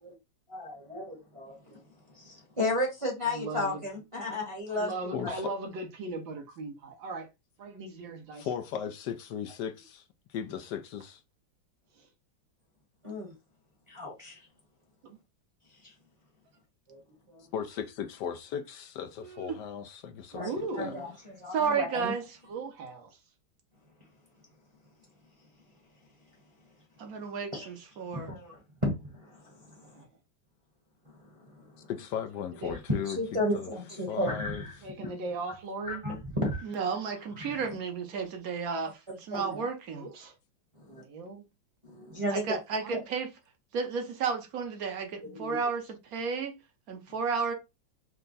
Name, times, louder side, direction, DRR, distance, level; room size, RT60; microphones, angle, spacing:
voice 1, 0.5-1.8 2.1-4.9 5.2-5.3 13.0-13.3 13.9-14.4 15.8-15.9 16.9-17.0 17.3-17.4 20.3-22.1 27.5-27.7 28.1-30.0 31.2-31.9 32.7-32.8 33.0-34.8 35.0-35.1 35.8-36.7 37.4-37.5 39.3-39.6 40.8-41.0 41.8-42.6 42.9-43.0 45.3-45.6, left 1 dB, 20° right, 0.9 m, -34 dB
voice 2, 3.2-3.8 4.7-7.3 7.6-8.4 12.0-12.1 15.0-15.2 20.3-21.1 22.5-23.2 29.9-30.1 32.6-32.7 34.1-34.2 34.8-36.0 39.9-40.3 41.0-41.4 42.7-43.0, right 2 dB, 80° right, 1.8 m, -38 dB
voice 3, 8.4-10.0 10.3-11.2 17.5-20.9 31.9-33.7 34.1-34.6 45.3-45.4, left 8 dB, 75° left, 1.1 m, -37 dB
voice 4, 19.2-19.6 21.5-22.2 27.0-28.3 36.6-40.1 42.3-43.3 43.7-45.8 46.1-46.6 46.9-47.5, right 5 dB, 55° right, 1.2 m, -32 dB
4.5 x 2.2 x 3.9 m
omnidirectional pair, 2.0 m